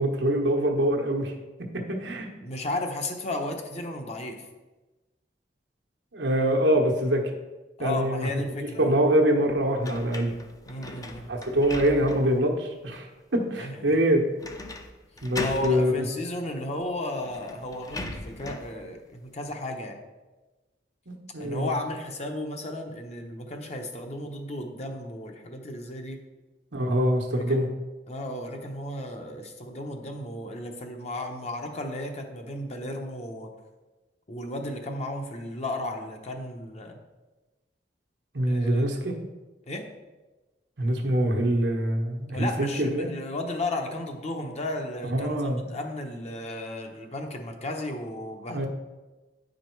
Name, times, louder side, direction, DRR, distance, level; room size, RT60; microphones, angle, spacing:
voice 1, 0.0-1.3 1.7-2.3 6.1-7.3 7.8-8.3 8.8-10.3 11.3-14.2 15.2-16.0 21.1-21.7 26.7-27.7 38.3-39.1 40.8-43.1 45.0-45.6 48.5-48.7, right 1 dB, 90° right, 2 dB, 1.2 m, -24 dB
voice 2, 2.4-4.4 7.8-9.0 10.7-11.3 13.6-14.0 15.4-20.0 21.4-26.2 27.3-27.6 28.1-33.5 34.3-37.0 38.5-39.0 39.7-39.9 42.3-45.4 45.7-48.7, left 1 dB, 40° left, 3 dB, 0.9 m, -34 dB
sound 1, 9.8-12.4 12.9-13.0 14.4-14.9 15.2-15.8 16.8-16.9 17.2-18.7, left 2 dB, 20° left, 0.6 m, -38 dB
9.1 x 5.0 x 4.6 m, 1.2 s
head